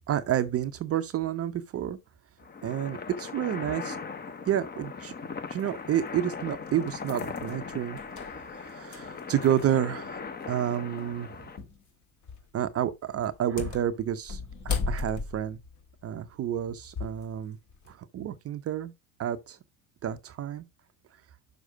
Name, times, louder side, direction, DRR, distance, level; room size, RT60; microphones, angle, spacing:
voice 1, 0.1-2.0 2.6-4.0 4.5-5.1 5.5-8.0 8.5-10.2 10.5-11.3 12.5-15.6 16.0-17.6 17.9-18.9 19.2-19.6 20.0-20.7, right 10 dB, 35° right, 0.7 m, -30 dB
sound 1, 2.4-11.6, left 5 dB, 20° left, 1.0 m, -39 dB
sound 2, 5.6-5.7 6.4-9.9 10.2-10.3 11.6-11.8 12.2-12.6 13.2-17.2 17.7-17.9, left 4 dB, 40° left, 2.0 m, -36 dB
6.4 x 4.9 x 4.9 m
hypercardioid pair, 70°, 44 cm